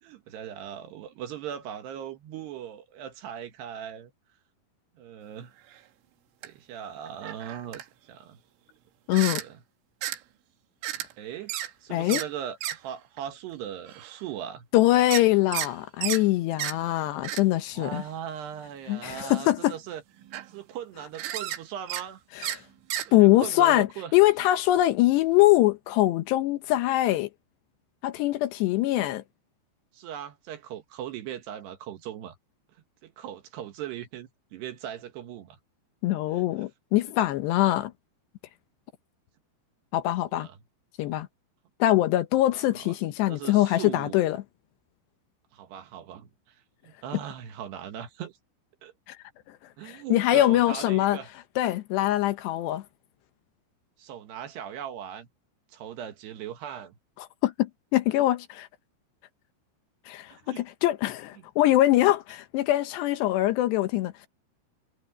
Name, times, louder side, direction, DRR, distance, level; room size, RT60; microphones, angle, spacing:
voice 1, 0.0-4.1 5.0-5.5 6.4-8.4 9.3-9.6 11.2-11.5 11.8-14.7 17.7-20.0 20.5-22.2 23.1-24.1 29.9-32.4 33.0-35.6 36.3-36.7 40.4-40.6 42.5-42.9 43.3-44.2 45.5-46.6 46.8-48.3 48.8-48.9 49.8-51.3 54.0-55.3 55.7-57.0 60.3-60.6 61.4-61.5, right 10 dB, 70° right, 3.3 m, -39 dB
sound 1, 5.7-5.8 6.4-6.5 7.1-7.8 9.1-9.5 10.0-10.2 10.8-11.1 11.5-11.7 12.1-12.3 12.6-12.8 13.2-13.3 13.9-14.2 15.1-15.7 16.0-16.2 16.6-16.8 17.2-17.4 18.1-18.2 19.0-19.3 19.9-20.0 20.2-20.6 21.1-21.6 21.9-22.1 22.4-22.6 22.9-23.1, right 12 dB, 85° right, 3.9 m, -33 dB
voice 2, 9.1-9.4 11.9-12.2 14.7-18.0 18.9-19.7 22.3-22.6 23.1-23.9 24.1-27.3 28.0-29.2 36.0-37.9 39.9-40.5 41.0-41.3 41.8-44.4 49.1-49.2 49.8-51.2 51.6-52.8 57.2-58.7 60.1-64.3, left 15 dB, 75° left, 2.8 m, -23 dB
omnidirectional pair, 5.4 m